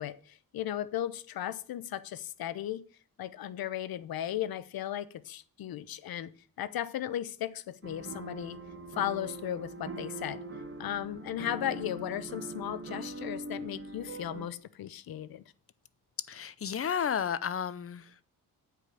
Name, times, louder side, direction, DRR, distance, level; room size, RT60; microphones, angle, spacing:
voice 1, 0.0-2.8 3.2-6.3 6.6-8.6 9.0-10.4 10.8-15.4, left 11 dB, 85° left, 0.8 m, -36 dB
sound 1, 7.8-14.5, right 2 dB, 35° right, 1.2 m, -42 dB
voice 2, 16.3-18.2, left 8 dB, 40° left, 0.7 m, -32 dB
9.3 x 5.2 x 7.8 m
wide cardioid pair, 120°, 35 cm